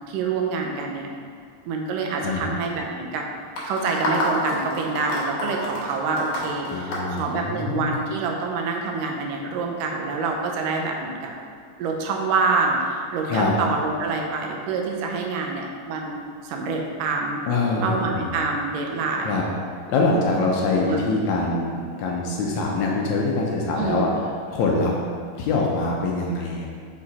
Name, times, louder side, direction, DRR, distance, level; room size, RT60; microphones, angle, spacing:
voice 1, 0.1-1.1 1.7-3.3 3.6-11.3 11.8-16.2 16.4-17.4 17.8-19.4 20.0-20.3 20.7-21.0 23.7-24.1, right 4 dB, 85° right, 1 dB, 2.3 m, -26 dB
voice 2, 2.2-2.5 6.7-7.9 13.2-13.5 17.4-18.4 19.2-19.4 19.9-24.1 24.5-24.9 25.4-26.7, left 3 dB, 75° left, -2 dB, 1.9 m, -24 dB
sound 1, 3.6-8.0, left 1 dB, 60° left, 2.1 m, -28 dB
5.9 x 5.0 x 4.1 m, 2.2 s
omnidirectional pair, 3.7 m